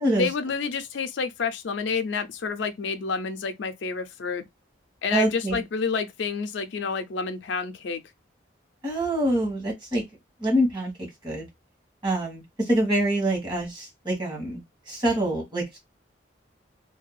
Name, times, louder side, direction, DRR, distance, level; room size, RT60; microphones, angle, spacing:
voice 1, 0.1-4.4 5.0-8.0, left 5 dB, 75° left, 0.5 m, -29 dB
voice 2, 5.1-5.6 8.8-10.0 10.4-10.9 11.2-11.5 12.0-14.6 14.9-15.8, right 1 dB, 25° right, 1.3 m, -25 dB
2.7 x 2.3 x 2.3 m
head